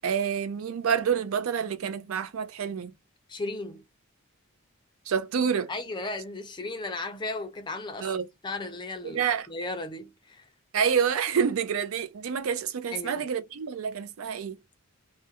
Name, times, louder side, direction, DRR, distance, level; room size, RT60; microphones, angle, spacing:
voice 1, 0.0-2.9 5.1-5.7 8.0-8.3 9.0-9.5 10.7-14.6, right 7 dB, 70° right, 0.4 m, -28 dB
voice 2, 3.3-3.8 5.7-8.1 8.4-9.2 9.5-10.5 12.9-13.3, left 2 dB, 20° left, 0.4 m, -35 dB
2.4 x 2.1 x 2.8 m
head